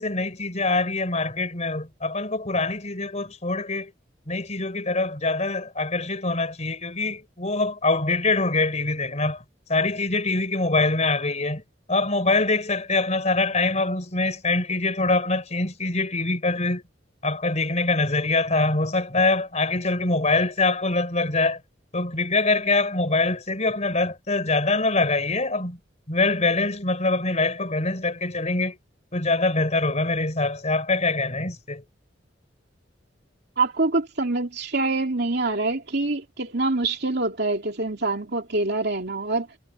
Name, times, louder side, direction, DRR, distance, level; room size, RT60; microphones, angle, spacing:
voice 1, 0.0-3.9 4.3-9.4 9.7-11.6 11.9-16.8 17.2-21.6 21.9-25.8 26.1-28.8 29.1-31.8, left 3 dB, 40° left, 4.0 m, -24 dB
voice 2, 33.6-39.5, right 2 dB, 60° right, 2.9 m, -25 dB
head